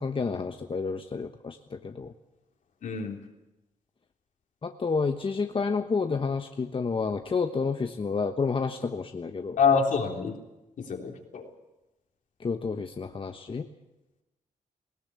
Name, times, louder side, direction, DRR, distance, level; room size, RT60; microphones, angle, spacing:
voice 1, 0.0-2.1 4.6-9.6 12.4-13.7, left 4 dB, 40° left, 6 dB, 1.2 m, -30 dB
voice 2, 2.8-3.2 9.6-10.4 10.8-11.5, left 5 dB, 70° left, 2 dB, 3.5 m, -26 dB
19.5 x 18.0 x 8.4 m, 1.0 s
cardioid pair, 65°, 14 cm